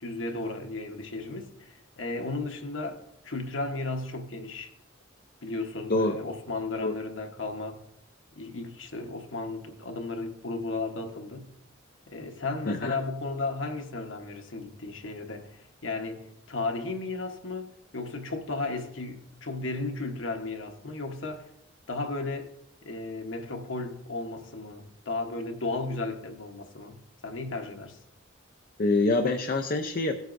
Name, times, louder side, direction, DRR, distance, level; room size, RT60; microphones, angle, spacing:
voice 1, 0.0-4.7 5.4-7.8 8.3-11.5 12.1-21.5 21.9-22.5 22.8-28.0, left 3 dB, 85° left, 1.1 m, -34 dB
voice 2, 12.7-13.0 28.8-30.2, left 2 dB, 50° left, 0.6 m, -25 dB
16.5 x 7.9 x 2.6 m
head